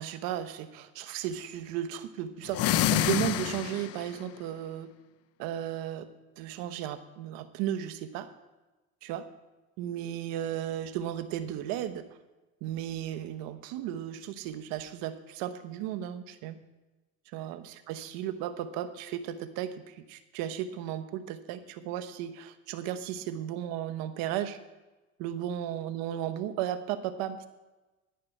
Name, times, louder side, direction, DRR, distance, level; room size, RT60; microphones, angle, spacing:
voice 1, 0.0-4.9 5.4-6.1 6.4-8.3 9.0-9.2 9.8-12.1 12.6-16.6 17.3-24.6 25.2-27.5, right 11 dB, 85° right, 10 dB, 1.1 m, -35 dB
sound 1, 2.5-4.1, left 13 dB, 45° left, 0.5 m, -27 dB
13.0 x 10.5 x 4.5 m, 1.1 s
cardioid pair, 140°, 34 cm